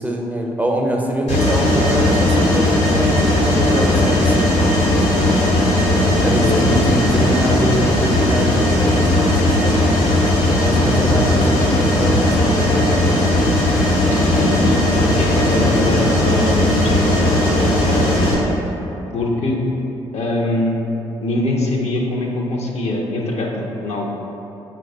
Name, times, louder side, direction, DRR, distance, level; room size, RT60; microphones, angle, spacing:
voice 1, 0.0-5.5 6.2-9.8 10.6-13.1 14.5-15.0, right 1 dB, 10° right, 0 dB, 0.5 m, -24 dB
Mechanisms, 1.3-18.3, left 1 dB, 80° left, 1.2 m, -16 dB
voice 2, 6.4-6.8 14.1-18.4 19.1-19.6 20.1-20.7 21.2-24.1, left 2 dB, 55° left, -1 dB, 0.6 m, -23 dB
4.6 x 2.3 x 3.8 m, 3.0 s
hypercardioid pair, 45°, 13 cm